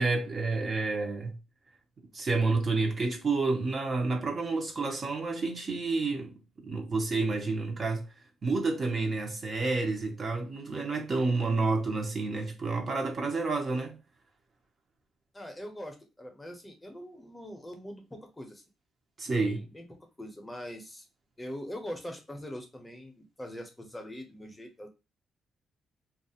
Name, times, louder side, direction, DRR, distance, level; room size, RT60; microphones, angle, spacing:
voice 1, 0.0-1.4 2.1-6.3 6.6-8.1 8.4-14.0 19.2-19.6, right 3 dB, 40° right, 0.7 m, -29 dB
voice 2, 15.3-18.6 19.4-19.8 20.2-21.0 21.4-24.9, equal, 10° left, 0.6 m, -42 dB
2.3 x 2.3 x 2.7 m
cardioid pair, 90°, 0 cm